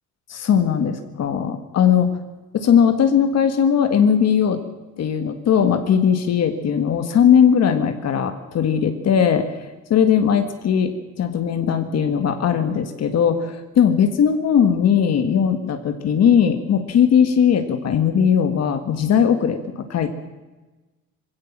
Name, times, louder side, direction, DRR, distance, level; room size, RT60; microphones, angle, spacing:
voice 1, 0.3-2.1 2.5-4.6 5.0-9.5 9.9-20.1, left 8 dB, 55° left, 7 dB, 1.8 m, -18 dB
22.5 x 16.5 x 7.4 m, 1.2 s
cardioid pair, 145°, 32 cm